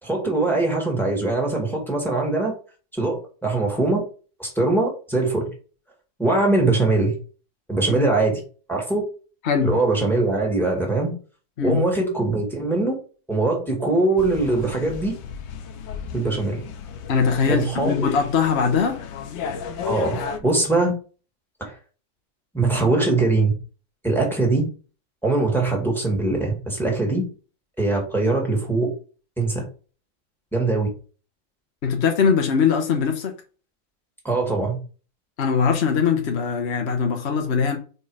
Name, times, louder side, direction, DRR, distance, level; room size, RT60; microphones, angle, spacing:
voice 1, 0.0-2.6 2.9-4.0 4.4-5.5 6.2-7.1 7.7-8.4 8.7-9.0 9.6-11.1 11.6-12.9 13.3-15.1 16.1-16.6 17.5-18.1 19.8-20.9 21.6-21.7 22.5-23.5 24.0-24.6 25.2-27.2 27.8-28.9 29.4-29.6 30.5-30.9 34.2-34.8, right 2 dB, ahead, 1.9 m, -22 dB
sound 1, 14.2-20.4, left 7 dB, 80° left, 1.5 m, -34 dB
voice 2, 17.1-19.0 31.8-33.3 35.4-37.8, left 6 dB, 50° left, 0.8 m, -21 dB
5.2 x 4.5 x 4.9 m
omnidirectional pair, 2.2 m